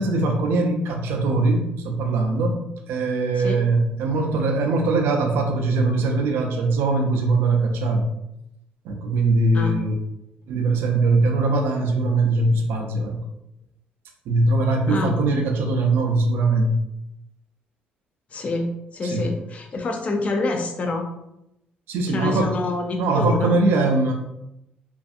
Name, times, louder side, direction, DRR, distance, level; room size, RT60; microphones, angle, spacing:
voice 1, 0.0-2.6 2.9-8.1 8.8-9.9 10.5-13.2 14.3-16.8 19.1-19.2 21.9-22.6 23.0-24.1, right 2 dB, 80° right, 2 dB, 0.5 m, -21 dB
voice 2, 18.3-21.0 22.1-23.6, left 3 dB, 35° left, 3 dB, 0.4 m, -27 dB
2.5 x 2.5 x 2.4 m, 0.85 s
cardioid pair, 90°, 4 cm